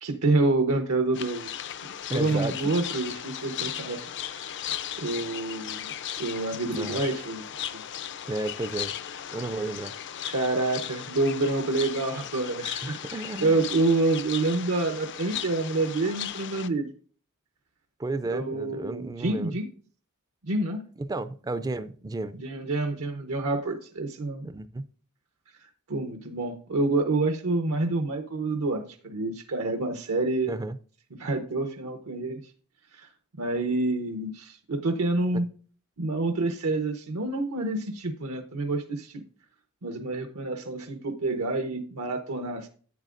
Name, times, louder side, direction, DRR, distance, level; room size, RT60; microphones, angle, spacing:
voice 1, 0.0-1.5 2.1-4.0 4.3-4.4 5.0-5.9 6.2-7.5 7.7-7.8 10.3-16.9 18.3-19.7 20.4-20.8 22.4-24.5 25.9-30.5 31.2-32.4 32.9-33.1 33.4-35.5 36.0-39.2 39.8-42.7, right 2 dB, 80° right, 5 dB, 0.8 m, -27 dB
sound 1, 1.1-16.7, left 10 dB, 55° left, 0.5 m, -37 dB
voice 2, 2.1-2.5 6.7-7.0 8.3-8.9 9.3-9.9 12.8-13.6 18.0-19.6 21.0-22.4 24.4-24.9 30.5-30.8 35.3-35.4, right 2 dB, 15° right, 14 dB, 0.4 m, -32 dB
10.5 x 8.4 x 2.5 m, 0.43 s
head